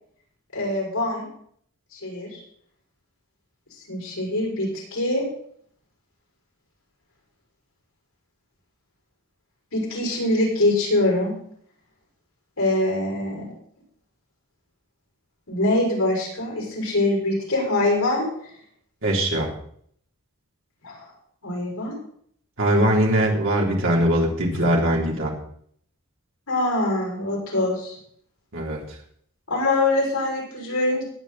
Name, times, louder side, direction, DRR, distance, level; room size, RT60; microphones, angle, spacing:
voice 1, 0.5-1.2 1.9-2.4 3.9-5.2 9.7-11.3 12.6-13.4 15.5-18.3 20.8-21.0 21.4-21.9 26.5-27.9 29.5-31.0, left 2 dB, 80° left, -2 dB, 6.6 m, -23 dB
voice 2, 19.0-19.5 22.6-25.3 28.5-28.8, right 1 dB, 60° right, -1 dB, 3.5 m, -21 dB
20.5 x 8.5 x 4.3 m, 0.64 s
head